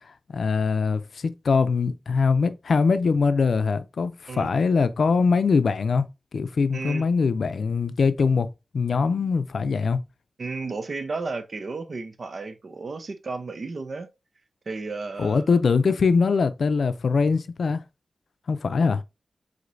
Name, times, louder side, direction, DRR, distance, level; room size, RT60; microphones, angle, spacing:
voice 1, 0.3-6.1 6.3-10.0 15.2-17.8 18.5-19.0, left 5 dB, 80° left, 0.5 m, -22 dB
voice 2, 6.7-7.0 10.4-14.1 14.7-15.6, right 3 dB, 60° right, 0.7 m, -33 dB
4.9 x 4.0 x 2.6 m
wide cardioid pair, 115°, 0 cm